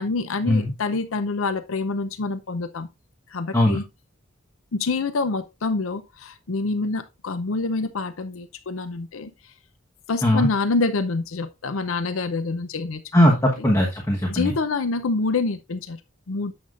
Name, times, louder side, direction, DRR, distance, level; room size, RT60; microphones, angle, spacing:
voice 1, 0.0-2.9 3.3-3.8 4.7-9.3 10.1-13.0 13.6-13.7 14.3-16.0 16.3-16.5, left 3 dB, 85° left, 0.6 m, -26 dB
voice 2, 13.1-14.5, left 1 dB, 15° left, 1.2 m, -19 dB
9.4 x 7.2 x 2.5 m
head